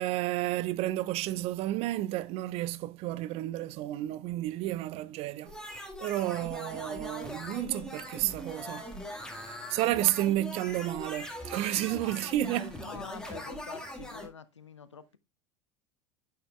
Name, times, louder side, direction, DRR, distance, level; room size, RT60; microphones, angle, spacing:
voice 1, 0.0-5.5 6.0-12.8, right 15 dB, 45° right, 0.5 m, -31 dB
sound 1, 5.5-14.3, left 1 dB, 5° left, 1.7 m, -41 dB
voice 2, 12.8-15.2, left 6 dB, 80° left, 0.6 m, -46 dB
8.7 x 6.6 x 2.3 m
figure-of-eight pair, 75°, 15 cm